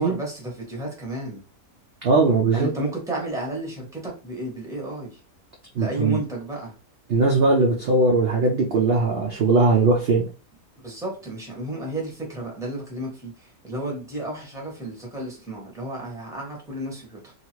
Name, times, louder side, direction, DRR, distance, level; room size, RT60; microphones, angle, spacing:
voice 1, 0.0-1.4 2.5-5.2 5.8-6.8 10.8-17.3, right 1 dB, 5° right, 0.8 m, -32 dB
voice 2, 2.0-2.7 5.7-6.2 7.1-10.2, right 3 dB, 65° right, 0.6 m, -19 dB
2.8 x 2.4 x 2.9 m
omnidirectional pair, 1.6 m